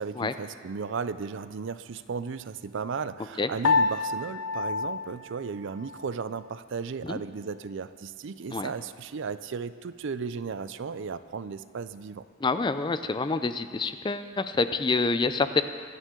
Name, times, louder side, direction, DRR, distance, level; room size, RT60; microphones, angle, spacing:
voice 1, 0.0-12.2, right 5 dB, 60° right, 14 dB, 0.4 m, -35 dB
Piano, 3.6-6.2, left 4 dB, 85° left, 0.7 m, -28 dB
voice 2, 12.4-15.6, left 3 dB, 20° left, 11 dB, 0.4 m, -27 dB
24.0 x 9.1 x 3.8 m, 2.1 s
head